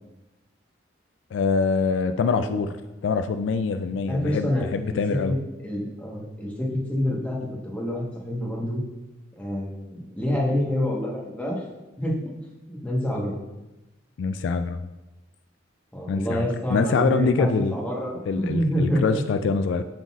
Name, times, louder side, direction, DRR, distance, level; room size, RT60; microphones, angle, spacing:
voice 1, 1.3-2.7 3.0-5.3 14.2-14.9 16.1-17.7 18.3-19.8, left 5 dB, 70° left, 9 dB, 0.3 m, -25 dB
voice 2, 2.2-2.7 4.1-5.0 5.2-5.3 5.6-7.4 7.6-8.8 9.4-11.7 12.0-12.3 12.7-13.4 15.9-19.2, equal, 5° left, -5 dB, 1.2 m, -27 dB
11.0 x 3.9 x 2.4 m, 1.0 s
head